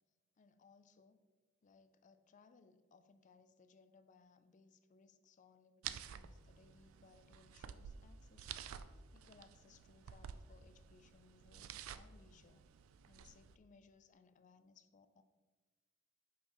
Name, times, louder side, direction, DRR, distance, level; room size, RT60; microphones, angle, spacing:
voice 1, 0.4-1.2 1.6-8.6 9.1-12.6 13.1-15.2, left 4 dB, 40° left, 10 dB, 0.4 m, -66 dB
sound 1, 5.8-13.6, right 8 dB, 80° right, 0.3 m, -52 dB
6.2 x 5.4 x 3.0 m, 1.3 s
head